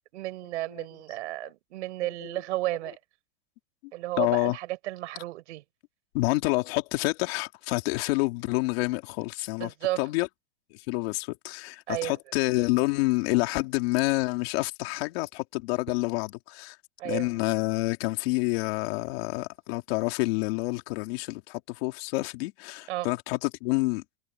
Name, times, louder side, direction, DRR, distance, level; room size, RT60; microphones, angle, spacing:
voice 1, 0.1-3.0 3.9-5.6 9.6-10.0 11.9-12.2 17.0-17.3 22.9-23.1, right 17 dB, 80° right, 4.8 m, -33 dB
voice 2, 4.2-4.6 6.1-10.3 10.7-16.8 17.0-24.0, left 23 dB, 60° left, 3.1 m, -28 dB
supercardioid pair, 160°, 34 cm